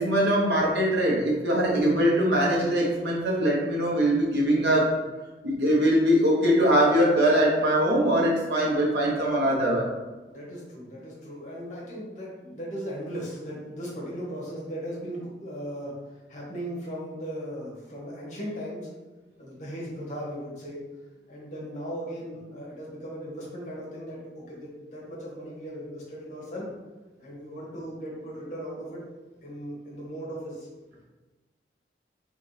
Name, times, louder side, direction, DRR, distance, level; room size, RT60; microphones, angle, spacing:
voice 1, 0.0-4.9 5.4-9.9, equal, 75° right, -3 dB, 1.3 m, -22 dB
voice 2, 10.3-18.9 19.4-20.8 21.3-26.7 27.2-29.0 29.4-30.7, equal, 40° left, -5 dB, 1.4 m, -37 dB
4.3 x 3.4 x 3.4 m, 1.2 s
head